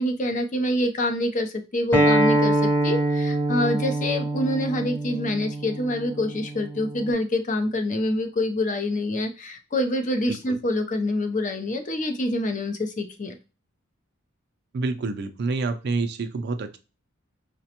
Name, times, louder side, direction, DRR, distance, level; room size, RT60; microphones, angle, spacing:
voice 1, 0.0-13.3, left 1 dB, 40° left, 6 dB, 0.5 m, -26 dB
Acoustic guitar, 1.9-7.1, right 1 dB, 10° left, 0.9 m, -24 dB
voice 2, 14.7-16.8, right 3 dB, 50° right, 8 dB, 0.4 m, -28 dB
4.9 x 2.2 x 2.8 m, 0.30 s
head